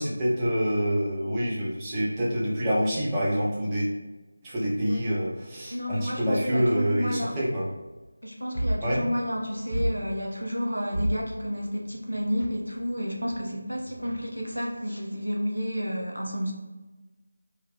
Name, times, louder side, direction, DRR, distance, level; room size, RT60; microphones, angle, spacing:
voice 1, 0.0-3.9 4.4-7.7 8.8-9.0, equal, 10° right, -7 dB, 0.5 m, -26 dB
voice 2, 5.7-7.3 8.2-16.5, equal, 85° right, -1 dB, 0.7 m, -31 dB
sound 1, 8.1-8.2 8.5-9.4 9.7-10.5 10.9-12.5 12.8-13.4 13.6-15.1, right 1 dB, 60° right, 1.5 m, -32 dB
3.2 x 2.1 x 2.3 m, 1.2 s
figure-of-eight pair, 165°, 0 cm